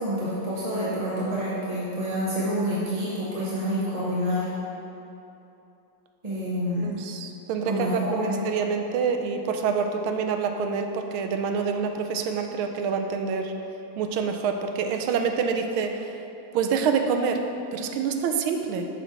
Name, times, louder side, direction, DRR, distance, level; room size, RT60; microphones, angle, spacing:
voice 1, 0.0-4.5 6.2-7.0 7.6-8.4, equal, 25° right, -8 dB, 0.8 m, -28 dB
voice 2, 6.8-13.5 14.0-16.1 16.5-17.5 17.7-18.9, right 6 dB, 85° right, 5 dB, 1.5 m, -27 dB
8.1 x 4.4 x 5.9 m, 2.9 s
omnidirectional pair, 2.2 m